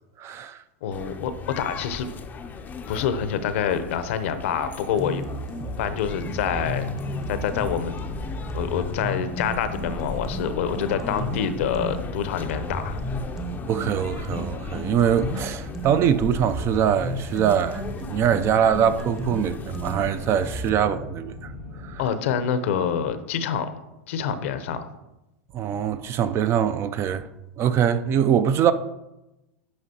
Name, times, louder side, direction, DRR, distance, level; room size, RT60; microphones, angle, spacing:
voice 1, 0.2-0.6 13.7-21.3 21.8-22.0 25.5-27.3 27.6-28.7, right 9 dB, 35° right, 0.4 m, -23 dB
voice 2, 0.8-2.1 2.9-5.2 5.8-6.9 7.3-8.0 8.5-13.0 22.0-23.7 24.1-24.9, left 8 dB, 65° left, 0.7 m, -26 dB
sound 1, 0.9-20.7, left 5 dB, 20° left, 0.5 m, -38 dB
sound 2, 4.9-12.0 12.5-16.0 16.5-20.9, equal, 10° right, 0.8 m, -34 dB
sound 3, 5.6-22.0, left 1 dB, 75° right, 2.6 m, -38 dB
9.7 x 5.0 x 2.8 m
hypercardioid pair, 100°, 7 cm